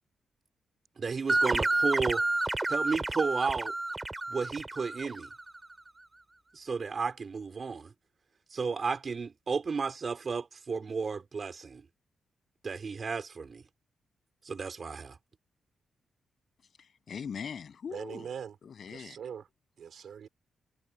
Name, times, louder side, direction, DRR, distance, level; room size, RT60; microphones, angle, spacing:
voice 1, 1.0-2.2 2.7-3.7 4.3-5.3 6.5-7.9 8.5-11.9 12.6-13.6 14.4-15.2, right 5 dB, 45° right, 4.1 m, -33 dB
sound 1, 1.3-5.6, right 2 dB, 20° right, 4.8 m, -30 dB
voice 2, 16.8-18.3 18.6-19.2, left 7 dB, 55° left, 7.2 m, -41 dB
voice 3, 17.9-18.5 18.9-19.4 19.8-20.3, right 7 dB, 65° right, 4.4 m, -41 dB
cardioid pair, 105°, 0 cm